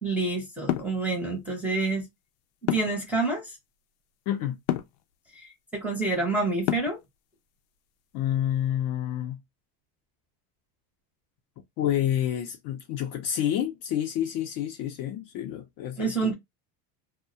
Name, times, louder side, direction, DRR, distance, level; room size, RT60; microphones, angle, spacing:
voice 1, 0.0-2.1 2.7-3.5 5.3-5.5 5.7-7.0 16.0-16.3, right 3 dB, 5° right, 0.6 m, -27 dB
sound 1, 0.7-1.0 2.7-3.1 4.7-5.0 6.7-7.1, left 13 dB, 85° left, 0.6 m, -27 dB
voice 2, 4.3-4.6 8.1-9.4 11.8-16.3, left 11 dB, 45° left, 0.5 m, -29 dB
2.3 x 2.1 x 2.6 m
supercardioid pair, 145°, 49 cm